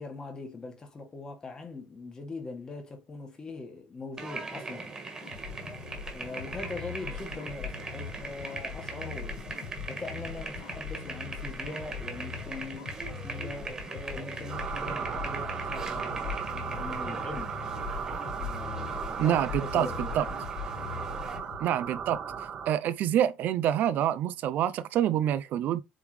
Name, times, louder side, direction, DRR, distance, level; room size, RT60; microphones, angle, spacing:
voice 1, 0.0-4.9 6.1-9.5 9.9-17.6 18.4-20.2 20.8-20.9, left 3 dB, 20° left, 1.6 m, -41 dB
sound 1, 4.2-21.4, right 3 dB, 20° right, 1.6 m, -41 dB
sound 2, 5.2-21.6, left 7 dB, 85° left, 1.0 m, -41 dB
sound 3, 14.5-22.7, right 6 dB, 35° right, 1.0 m, -36 dB
voice 2, 19.2-19.9 20.1-20.3 21.6-22.2 22.7-25.8, right 11 dB, 55° right, 0.5 m, -26 dB
8.1 x 3.6 x 3.2 m
cardioid pair, 165°, 4 cm